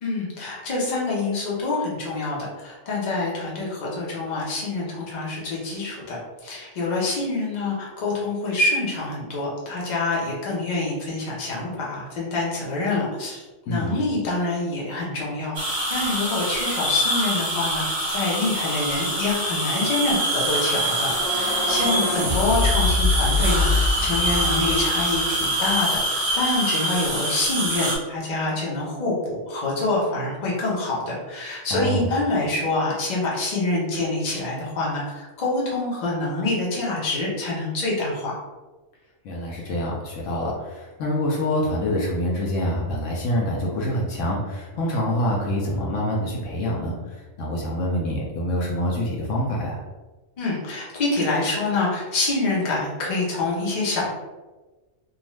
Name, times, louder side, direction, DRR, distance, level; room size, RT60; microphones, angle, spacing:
voice 1, 0.0-17.8 18.1-38.3 50.4-54.1, left 2 dB, 40° left, -5 dB, 0.8 m, -26 dB
sound 1, 15.6-28.0, right 1 dB, 50° right, 0.8 m, -25 dB
sound 2, 20.9-25.7, left 3 dB, 10° right, 0.6 m, -25 dB
voice 2, 31.7-32.2 39.2-49.8, equal, 75° left, -3 dB, 0.9 m, -26 dB
2.5 x 2.3 x 3.0 m, 1.2 s
omnidirectional pair, 1.4 m